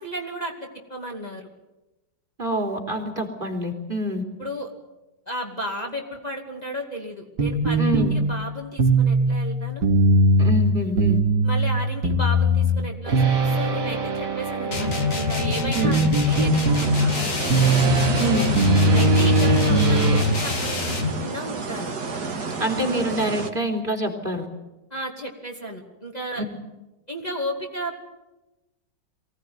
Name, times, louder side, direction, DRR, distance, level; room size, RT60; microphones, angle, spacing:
voice 1, 0.0-1.5 4.4-4.7 5.3-9.8 11.4-17.4 18.9-21.9 24.9-26.4 27.1-28.1, equal, 25° left, -1 dB, 2.8 m, -33 dB
voice 2, 2.4-4.2 7.8-8.2 10.4-11.2 15.7-16.0 18.2-18.5 22.6-24.5 26.4-26.5, right 1 dB, 30° right, 3 dB, 3.5 m, -26 dB
sound 1, 7.4-20.2, right 2 dB, 90° right, 3.0 m, -21 dB
sound 2, 14.7-21.2, left 5 dB, 50° left, 2.8 m, -25 dB
sound 3, 16.3-23.5, right 4 dB, 70° right, 2.5 m, -31 dB
24.0 x 17.5 x 9.5 m, 1.0 s
omnidirectional pair, 1.8 m